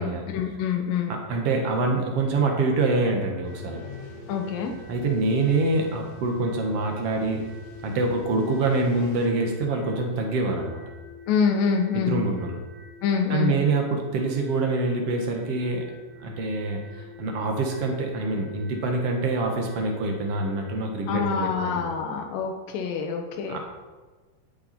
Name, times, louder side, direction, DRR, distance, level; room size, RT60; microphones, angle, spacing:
voice 1, 0.3-1.1 4.3-4.7 11.3-12.2 13.0-13.5 21.1-23.6, left 6 dB, 75° left, 2 dB, 2.2 m, -26 dB
voice 2, 1.3-3.8 4.9-7.4 7.8-10.8 11.9-12.6 13.3-15.9 16.2-21.8 23.5-23.6, right 3 dB, 65° right, 2 dB, 1.5 m, -25 dB
sound 1, 2.2-20.7, left 2 dB, 45° right, 3.2 m, -47 dB
sound 2, 3.4-9.3, left 4 dB, 50° left, 2.4 m, -45 dB
12.0 x 8.1 x 4.3 m, 1.3 s
omnidirectional pair, 4.7 m